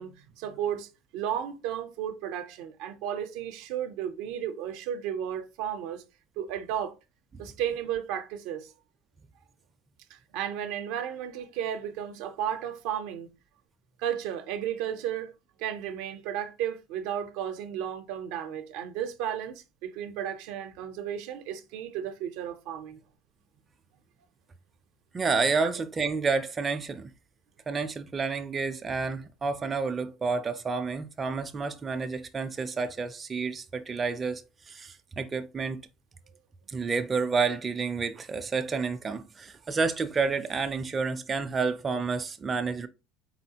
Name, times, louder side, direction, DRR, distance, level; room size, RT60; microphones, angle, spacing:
voice 1, 0.0-6.0 6.4-6.9 7.4-8.7 10.1-13.3 14.0-15.3 15.6-23.0 25.6-25.7, right 9 dB, 75° right, 0.5 m, -34 dB
voice 2, 25.1-27.1 27.7-34.4 34.7-35.8 36.7-42.9, right 4 dB, 25° right, 0.4 m, -29 dB
4.1 x 3.9 x 2.8 m
supercardioid pair, 115°, 0 cm